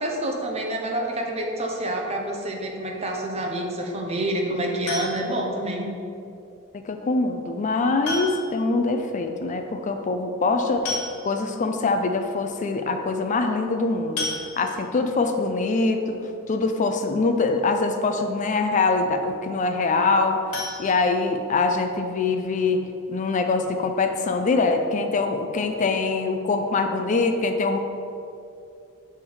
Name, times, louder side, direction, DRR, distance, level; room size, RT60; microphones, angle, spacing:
voice 1, 0.0-5.9, right 1 dB, 30° right, 0 dB, 0.8 m, -27 dB
sound 1, 4.9-5.5 7.0-7.1 8.0-8.7 9.0-9.1 9.4-9.5 10.5-10.6 10.9-11.6 12.1-12.2 12.6-12.7 14.2-15.0 20.5-21.7 22.1-22.2 22.6-22.7 23.1-23.2, left 3 dB, 80° left, 1.4 m, -33 dB
voice 2, 6.9-14.3 14.6-16.2 16.5-20.4 20.8-22.8 23.1-27.8, left 3 dB, 35° left, 6 dB, 0.4 m, -23 dB
6.8 x 3.5 x 4.6 m, 2.6 s
head